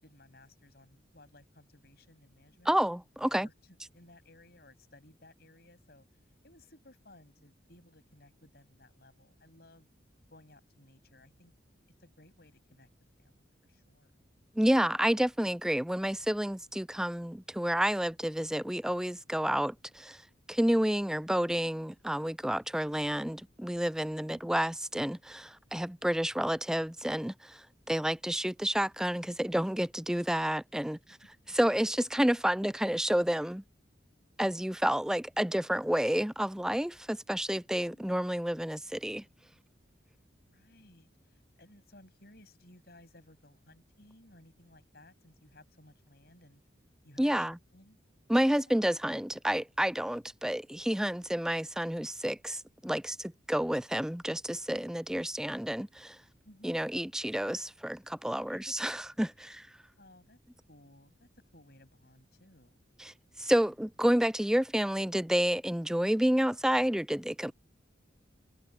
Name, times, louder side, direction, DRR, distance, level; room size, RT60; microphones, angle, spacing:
voice 1, 0.0-2.7 3.2-6.1 6.4-9.9 10.3-11.5 12.0-12.9 13.2-14.1 40.4-46.6 47.0-48.0 48.9-49.0 56.4-56.7 58.4-58.8 59.4-59.5 60.0-60.4 60.7-62.8, left 1 dB, 55° left, 7.9 m, -59 dB
voice 2, 2.7-3.5 14.6-20.2 20.5-31.0 31.5-33.6 34.4-39.2 47.2-47.6 48.3-56.2 56.6-59.7 63.0-67.5, equal, 5° right, 0.4 m, -30 dB
head